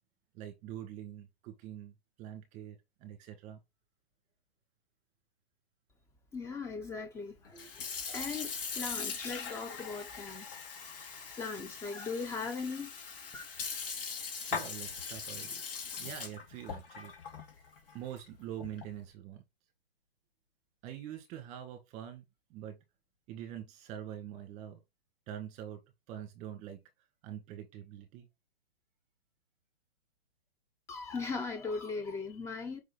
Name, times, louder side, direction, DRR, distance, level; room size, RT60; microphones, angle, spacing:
voice 1, 0.3-3.6 14.4-15.6 16.0-17.1 17.9-19.4 20.8-22.2 22.5-22.8 23.3-24.8 25.3-25.8 26.1-26.8 27.2-28.3, right 10 dB, 25° right, 1.9 m, -44 dB
voice 2, 6.3-11.1 11.4-12.9 13.3-13.4 30.9-32.8, left 4 dB, 10° left, 0.9 m, -39 dB
Sink (filling or washing) / Fill (with liquid), 7.4-19.0, left 5 dB, 60° left, 2.5 m, -41 dB
5.4 x 4.7 x 4.1 m
hypercardioid pair, 150°, 31 cm